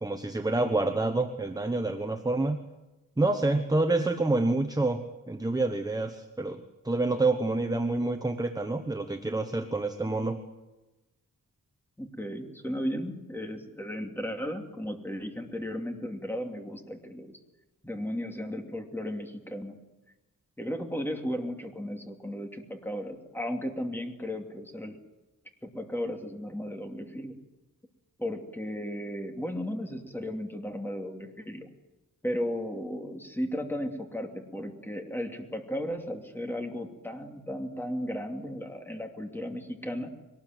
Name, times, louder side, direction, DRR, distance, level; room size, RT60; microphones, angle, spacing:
voice 1, 0.0-2.6 3.2-10.4, right 2 dB, 10° right, 7 dB, 1.1 m, -28 dB
voice 2, 12.0-17.4 17.8-19.8 20.6-25.0 25.6-27.4 28.2-31.7 32.2-40.1, equal, 5° left, 3 dB, 2.7 m, -35 dB
22.5 x 19.5 x 9.2 m, 1.1 s
wide cardioid pair, 175°, 34 cm